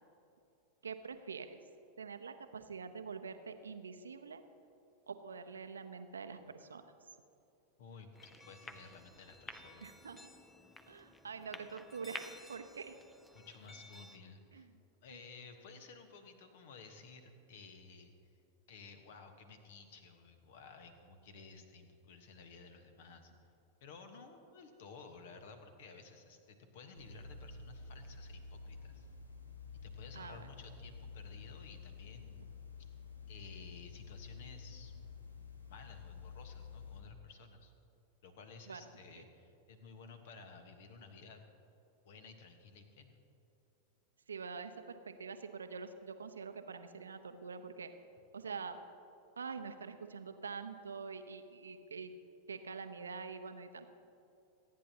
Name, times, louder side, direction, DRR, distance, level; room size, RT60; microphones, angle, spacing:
voice 1, 0.8-1.6 2.0-4.4 5.1-6.8 9.8-10.3 10.9-13.0 14.5-14.8 30.1-30.5 38.7-38.8 39.2-39.3 44.3-47.9 48.3-48.8 49.4-52.1 52.5-53.9, right 5 dB, 70° right, 9 dB, 0.7 m, -45 dB
voice 2, 7.8-9.9 13.3-14.7 15.0-18.1 18.7-23.3 23.8-29.1 29.8-32.9 33.3-34.9 35.7-37.7 38.2-41.4 42.0-43.2, left 4 dB, 55° left, 7 dB, 1.3 m, -55 dB
sound 1, 8.1-14.2, left 2 dB, 10° left, 0.6 m, -52 dB
sound 2, 26.9-37.0, left 5 dB, 80° left, 1.3 m, -50 dB
26.5 x 9.4 x 2.9 m, 2.7 s
figure-of-eight pair, 90°, 0 cm